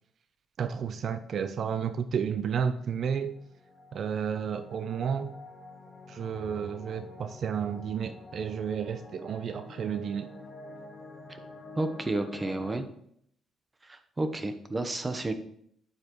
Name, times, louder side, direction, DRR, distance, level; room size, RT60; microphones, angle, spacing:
voice 1, 0.6-3.3 3.9-5.3 6.1-10.3, right 7 dB, 60° right, 11 dB, 0.6 m, -31 dB
sound 1, 3.1-12.8, left 2 dB, 35° left, 2.1 m, -48 dB
voice 2, 11.8-12.9 13.8-15.3, right 2 dB, 20° right, 8 dB, 1.0 m, -31 dB
9.1 x 8.1 x 3.1 m, 0.68 s
cardioid pair, 90°, 0 cm